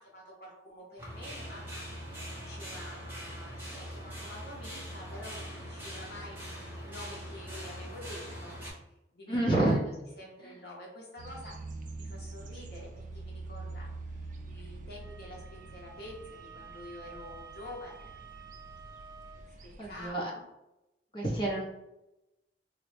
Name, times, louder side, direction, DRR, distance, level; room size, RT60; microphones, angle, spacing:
voice 1, 0.0-1.8 2.4-6.4 6.8-8.5 9.1-11.6 12.0-12.9 13.1-18.2 19.6-20.4, left 1 dB, 60° left, -2 dB, 0.7 m, -48 dB
sound 1, 1.0-8.7, equal, 10° right, 1.0 m, -42 dB
voice 2, 9.3-9.8 10.4-10.6 19.8-20.3 21.1-21.6, right 1 dB, 25° left, -4 dB, 0.9 m, -28 dB
sound 2, 11.2-20.1, right 2 dB, 45° right, 0.4 m, -45 dB
Wind instrument woodwind instrument, 15.0-19.5, right 7 dB, 75° right, 0.7 m, -51 dB
3.7 x 2.1 x 3.2 m, 0.92 s
head